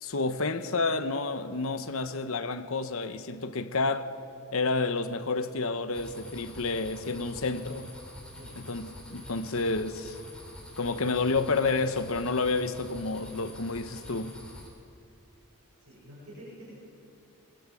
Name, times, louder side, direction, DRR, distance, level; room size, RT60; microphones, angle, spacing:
voice 1, 0.0-4.1 4.5-7.9 8.6-10.2 10.8-14.4, left 3 dB, 65° left, 1.1 m, -30 dB
sound 1, 5.9-14.7, left 1 dB, 5° left, 3.8 m, -46 dB
voice 2, 15.8-16.7, equal, 80° right, 7.7 m, -48 dB
23.5 x 21.0 x 8.5 m
head